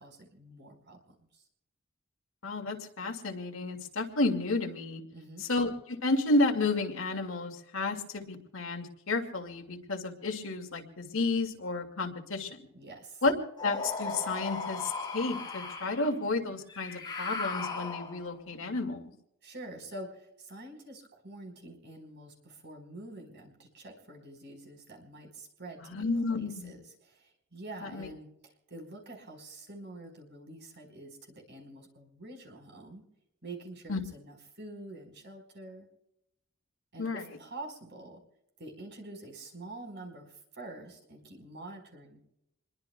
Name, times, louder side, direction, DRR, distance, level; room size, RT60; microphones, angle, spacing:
voice 1, 0.0-1.5 5.1-5.5 12.7-13.2 19.4-33.0 33.4-35.9 36.9-38.2 38.6-42.2, right 2 dB, 55° right, 2 dB, 4.5 m, -47 dB
voice 2, 2.4-5.0 5.4-12.6 13.2-13.3 13.6-19.0 25.8-26.8 27.9-28.1 33.9-34.0 37.0-37.2, left 2 dB, 70° left, 4 dB, 2.2 m, -31 dB
sound 1, 13.6-16.0 16.7-18.4, left 3 dB, 20° left, 3.2 m, -37 dB
27.5 x 22.0 x 2.3 m, 0.83 s
head